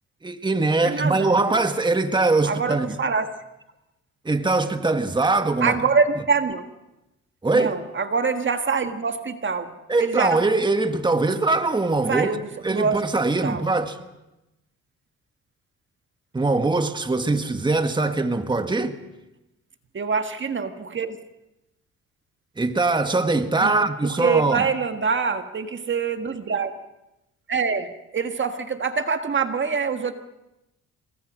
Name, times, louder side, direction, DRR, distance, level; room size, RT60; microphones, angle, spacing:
voice 1, 0.2-2.9 4.2-5.8 7.4-7.7 9.9-12.3 12.6-14.0 16.3-19.0 22.6-24.7, right 3 dB, 15° right, 1.6 m, -22 dB
voice 2, 0.8-1.6 2.4-3.3 5.6-6.6 7.5-10.4 12.1-13.0 13.4-13.6 19.9-21.2 23.6-26.7 27.5-30.1, right 5 dB, 40° right, 1.7 m, -25 dB
27.0 x 22.5 x 6.4 m
cardioid pair, 90°, 30 cm